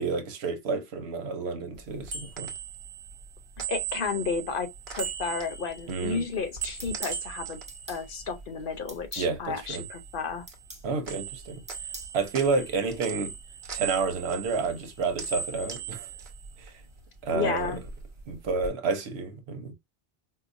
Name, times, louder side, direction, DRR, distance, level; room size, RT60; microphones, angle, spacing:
voice 1, 0.0-2.5 5.9-6.2 9.2-9.8 10.8-11.6 12.1-13.3 13.7-16.1 16.6-16.7 17.2-17.8 18.3-19.7, right 4 dB, 85° right, 1.1 m, -30 dB
sound 1, 1.8-9.1 9.4-10.8 11.0-17.0 17.4-18.7, right 7 dB, 55° right, 1.1 m, -39 dB
voice 2, 3.7-4.7 5.0-7.6 7.9-10.5 17.3-17.8, left 5 dB, 60° left, 0.8 m, -32 dB
sound 2, 6.8-7.2 7.7-8.0 8.9-9.3 10.5-10.9 11.7-12.1, right 1 dB, 10° right, 0.7 m, -43 dB
4.7 x 2.2 x 2.5 m
omnidirectional pair, 1.1 m